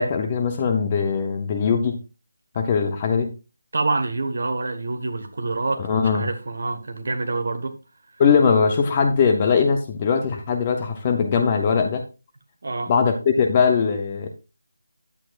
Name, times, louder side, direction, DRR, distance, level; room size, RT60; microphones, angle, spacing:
voice 1, 0.0-2.0 2.6-3.3 5.8-6.3 8.2-12.0 12.9-14.3, left 6 dB, 15° left, 0.6 m, -20 dB
voice 2, 3.7-7.8 12.6-12.9, right 3 dB, 40° right, 1.3 m, -26 dB
10.5 x 8.1 x 2.4 m
figure-of-eight pair, 180°, 0 cm